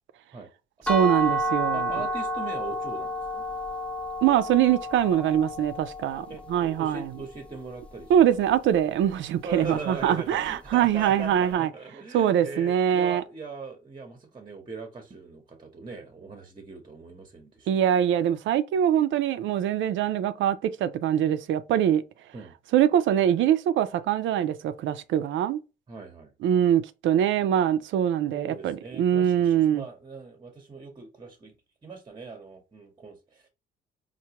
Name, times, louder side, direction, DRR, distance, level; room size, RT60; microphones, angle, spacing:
sound 1, 0.9-6.7, right 1 dB, 5° left, 0.5 m, -30 dB
voice 1, 0.9-1.9 4.2-7.0 8.1-11.7 12.1-13.2 17.7-22.0 22.7-25.6 26.4-29.8, right 10 dB, 75° right, 0.4 m, -23 dB
voice 2, 1.7-3.5 6.3-8.3 9.4-17.8 22.3-22.5 25.9-26.3 28.3-31.6 31.8-33.5, right 4 dB, 25° right, 0.8 m, -40 dB
4.5 x 2.1 x 2.8 m
cardioid pair, 90°, 20 cm